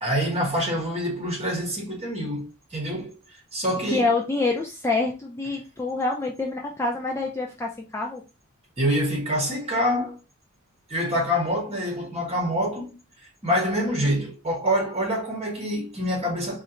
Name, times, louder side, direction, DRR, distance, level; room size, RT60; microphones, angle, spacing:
voice 1, 0.0-3.2 3.5-4.1 8.8-10.2 10.9-13.0 13.4-16.6, equal, 30° right, 1.4 m, -26 dB
voice 2, 3.9-8.2, left 3 dB, 10° left, 0.4 m, -26 dB
4.2 x 2.5 x 2.9 m
head